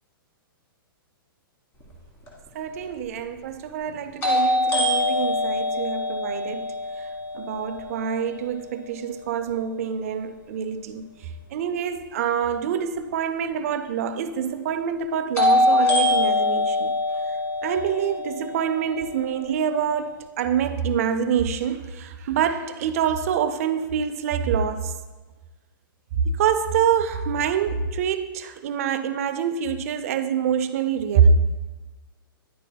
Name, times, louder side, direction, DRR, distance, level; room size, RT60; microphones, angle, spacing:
sound 1, 2.3-2.4 4.2-8.1 15.4-19.4, left 2 dB, 20° left, 1.4 m, -23 dB
voice 1, 2.5-6.7 7.0-7.1 7.3-11.0 11.5-16.9 17.6-24.9 26.3-31.4, right 7 dB, 40° right, 0.4 m, -25 dB
10.0 x 8.2 x 2.2 m
hypercardioid pair, 165°, 12 cm